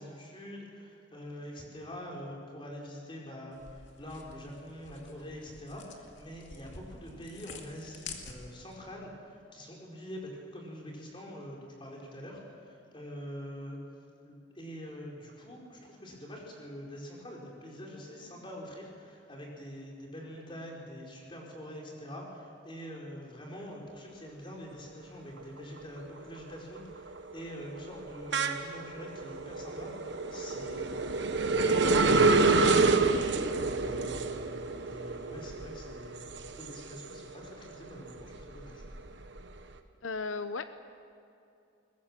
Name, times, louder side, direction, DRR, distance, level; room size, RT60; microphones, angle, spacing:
voice 1, 0.0-13.8 14.2-30.9 31.4-33.0 33.6-36.3 36.5-38.8, equal, 25° left, -2 dB, 4.5 m, -45 dB
sound 1, 3.5-8.7, left 4 dB, 65° left, 2.4 m, -48 dB
sound 2, 25.4-25.8 26.2-37.5 37.9-39.6, right 3 dB, 60° right, 1.2 m, -28 dB
voice 2, 40.0-40.8, left 4 dB, 90° left, 11 dB, 0.8 m, -35 dB
22.0 x 20.5 x 7.5 m, 2.6 s
head